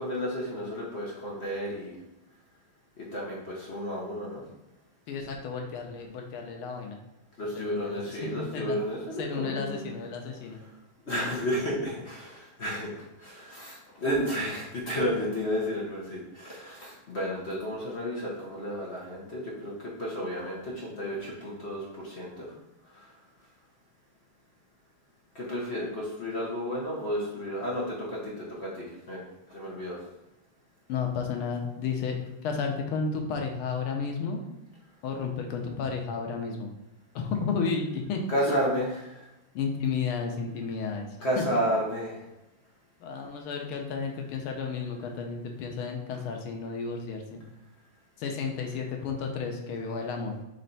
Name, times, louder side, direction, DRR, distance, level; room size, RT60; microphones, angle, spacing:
voice 1, 0.0-1.9 3.0-4.4 7.4-9.9 11.1-19.7 20.0-22.5 22.9-23.1 25.3-29.2 29.5-30.0 38.3-39.2 41.2-42.2, equal, 45° left, -5 dB, 0.8 m, -32 dB
voice 2, 5.1-7.0 7.6-8.8 9.2-10.6 30.9-32.2 32.4-34.4 35.0-36.7 37.2-38.5 39.6-41.1 41.4-41.5 43.0-47.4 48.2-50.4, left 5 dB, 85° left, 2 dB, 1.6 m, -32 dB
4.1 x 3.2 x 3.9 m, 0.94 s
omnidirectional pair, 2.3 m